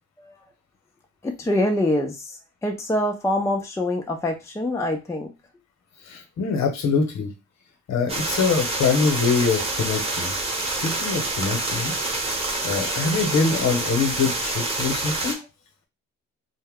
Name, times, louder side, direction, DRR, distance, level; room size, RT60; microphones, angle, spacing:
voice 1, 1.2-5.3, left 1 dB, 10° left, 3 dB, 0.5 m, -25 dB
voice 2, 6.0-7.3 7.9-10.3 10.6-11.9 12.3-15.4, left 5 dB, 65° left, 5 dB, 1.0 m, -24 dB
sound 1, 8.1-15.3, right 2 dB, 20° right, 1.0 m, -27 dB
2.7 x 2.2 x 3.5 m, 0.25 s
cardioid pair, 90°, 30 cm